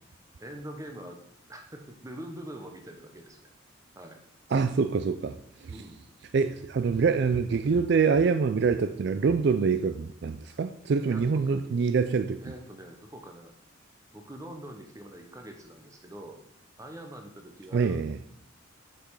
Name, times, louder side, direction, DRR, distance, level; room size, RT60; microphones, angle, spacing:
voice 1, 0.4-3.5 4.0-4.2 5.7-6.0 11.1-11.6 12.4-13.5 14.1-16.4 16.8-18.0, right 1 dB, 15° right, 4 dB, 0.9 m, -44 dB
voice 2, 4.5-5.4 5.6-5.8 6.3-12.4 17.7-18.2, right 5 dB, 55° right, 9 dB, 0.3 m, -25 dB
6.9 x 5.8 x 4.8 m, 0.68 s
head